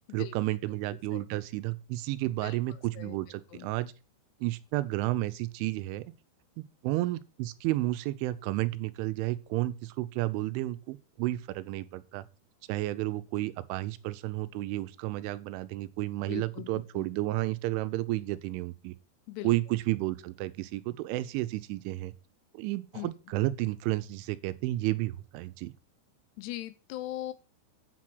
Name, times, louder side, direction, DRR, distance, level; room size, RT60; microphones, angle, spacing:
voice 1, 0.1-3.9 4.4-6.0 6.6-12.2 12.7-18.9 19.4-22.1 22.5-25.7, right 17 dB, 85° right, 3.0 m, -32 dB
voice 2, 2.4-3.2 3.5-3.7 16.3-17.1 19.3-19.5 22.9-23.1 26.4-27.3, left 15 dB, 85° left, 2.4 m, -40 dB
9.1 x 6.1 x 6.1 m
omnidirectional pair, 5.6 m